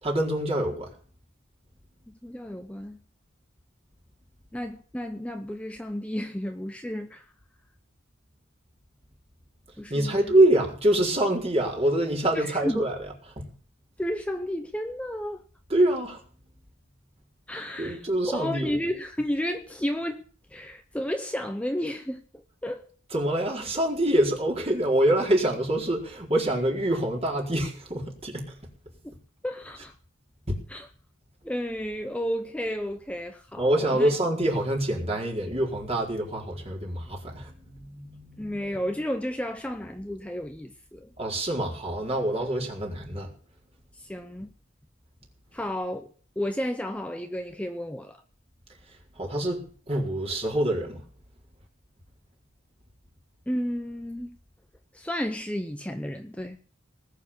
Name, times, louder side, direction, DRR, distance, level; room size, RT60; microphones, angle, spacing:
voice 1, 0.0-0.9 9.9-13.0 13.4-13.5 15.7-16.2 17.8-18.8 23.1-28.5 30.5-30.6 33.6-38.6 41.2-43.3 49.2-49.6 49.9-51.0, right 1 dB, 30° right, 4.4 m, -25 dB
voice 2, 2.1-3.0 4.5-7.3 9.8-10.3 12.3-12.8 14.0-15.4 17.5-20.2 20.5-22.9 29.4-29.9 30.7-30.9 31.4-34.2 38.4-41.1 43.9-44.5 45.5-48.2 53.5-54.4 54.9-56.6, equal, 5° left, 0.8 m, -32 dB
19.5 x 6.8 x 8.7 m
head